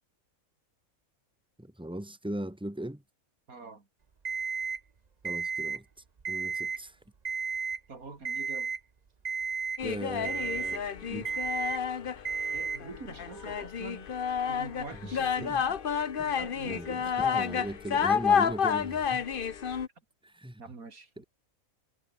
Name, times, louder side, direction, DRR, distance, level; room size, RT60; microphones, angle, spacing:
voice 1, 1.6-3.0 5.2-5.8 6.3-7.0 9.8-11.4 15.0-15.1 15.4-15.6 16.6-19.2 20.2-20.6 21.2-21.3, right 1 dB, 5° right, 2.8 m, -38 dB
voice 2, 3.5-3.8 7.9-8.7 12.5-14.1 14.4-15.7 16.2-17.2 20.6-21.1, right 4 dB, 80° right, 3.5 m, -45 dB
Alarm, 4.2-4.8 5.2-5.8 6.2-6.8 7.2-7.8 8.2-8.8 9.2-9.8 10.2-10.8 11.2-11.8 12.2-12.8, right 5 dB, 35° right, 1.0 m, -33 dB
sound 1, 9.8-19.9, left 7 dB, 45° left, 1.0 m, -30 dB
omnidirectional pair, 1.5 m